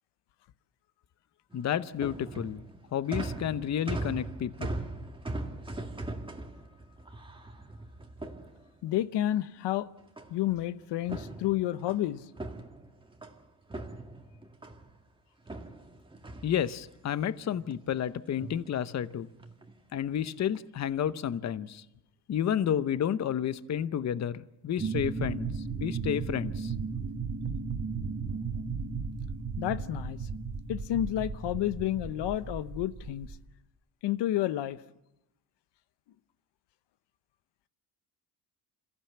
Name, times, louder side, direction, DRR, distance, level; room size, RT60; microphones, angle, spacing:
voice 1, 1.5-2.6 2.9-4.8 16.4-19.3 19.9-21.8 22.3-25.5 25.8-26.7, left 9 dB, 40° left, 0.8 m, -31 dB
sound 1, 1.5-9.0 10.2-10.6 11.0-13.4 13.7-15.0 15.5-17.1 17.5-18.0 18.3-18.7 19.4-19.7 20.3-20.6, right 2 dB, 10° right, 1.9 m, -40 dB
voice 2, 8.8-9.9 10.3-12.3 29.6-30.3 30.7-33.3 34.0-34.8, left 13 dB, 80° left, 0.9 m, -30 dB
sound 2, 24.8-33.4, right 5 dB, 35° right, 2.1 m, -35 dB
28.0 x 15.0 x 8.6 m
cardioid pair, 125°, 41 cm